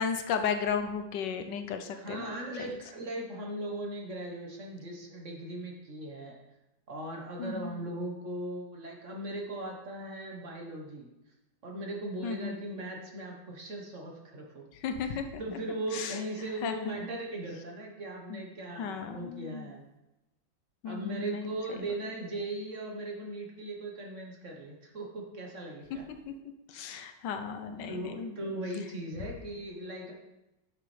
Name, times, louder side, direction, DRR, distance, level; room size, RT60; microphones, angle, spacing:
voice 1, 0.0-2.3 2.6-2.7 7.4-7.8 12.2-12.6 14.7-15.4 15.9-16.2 16.6-17.1 18.3-18.4 18.8-19.7 20.8-21.5 26.3-26.4 26.7-28.3, left 6 dB, 80° left, 7 dB, 1.3 m, -34 dB
voice 2, 1.9-6.3 6.9-11.1 11.6-14.6 15.0-19.8 20.8-26.0 27.9-30.1, right 1 dB, 45° right, 0 dB, 1.5 m, -38 dB
9.6 x 6.9 x 3.3 m, 0.95 s
omnidirectional pair, 1.9 m